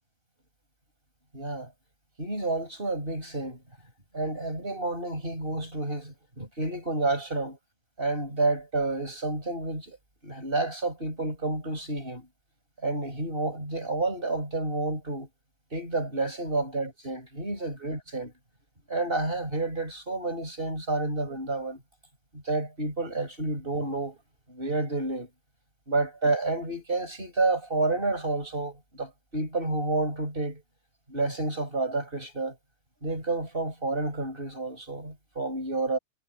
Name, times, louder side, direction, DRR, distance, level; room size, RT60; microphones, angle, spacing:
voice 1, 1.3-1.7 2.2-3.6 4.1-7.6 8.0-10.0 10.2-12.3 12.8-15.3 15.7-18.3 18.9-21.8 22.3-24.2 24.5-25.3 25.9-30.6 31.1-32.6 33.0-36.0, right 2 dB, 15° right, 6.5 m, -30 dB
omnidirectional pair, 3.7 m